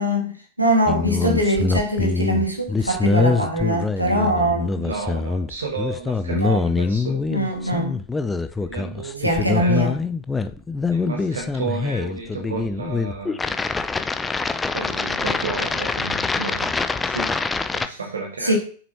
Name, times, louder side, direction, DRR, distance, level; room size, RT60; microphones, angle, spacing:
voice 1, 0.0-4.7 6.3-6.6 7.3-8.0 9.2-10.0 18.4-18.6, equal, 90° right, 0 dB, 2.1 m, -22 dB
sound 1, 0.9-17.9, left 4 dB, 10° left, 0.6 m, -24 dB
voice 2, 4.5-7.2 8.7-9.9 10.9-13.4 14.7-16.7 17.0-17.3 17.7-18.5, right 4 dB, 70° right, 0 dB, 1.8 m, -32 dB
8.5 x 7.1 x 3.0 m, 0.40 s
figure-of-eight pair, 90°, 0 cm